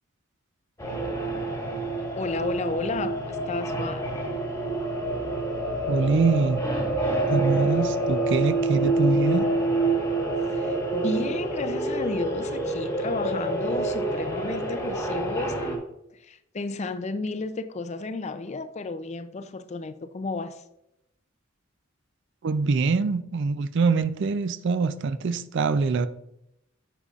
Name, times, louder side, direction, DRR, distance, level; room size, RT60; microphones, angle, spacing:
sound 1, 0.8-15.8, right 2 dB, 15° left, 1.3 m, -27 dB
voice 1, 2.1-4.1 10.4-15.8 16.1-20.6, left 3 dB, 35° left, 0.4 m, -32 dB
voice 2, 5.9-6.6 7.3-9.5 22.4-26.1, right 4 dB, 60° right, 0.4 m, -24 dB
8.9 x 6.8 x 2.4 m
head